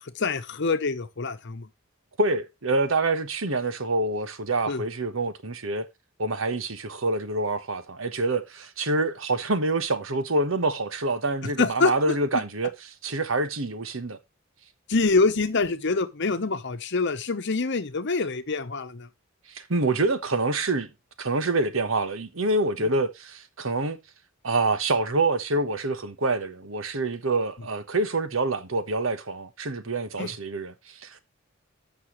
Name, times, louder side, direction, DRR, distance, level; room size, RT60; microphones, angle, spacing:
voice 1, 0.0-1.7 4.7-4.8 11.6-12.4 14.9-19.1 22.8-22.9 30.2-30.3, left 3 dB, 60° left, 1.0 m, -25 dB
voice 2, 2.2-5.9 6.2-12.7 13.0-14.2 19.5-20.9 21.2-24.0 24.4-31.2, right 2 dB, 75° right, 1.2 m, -26 dB
14.5 x 6.0 x 3.2 m
head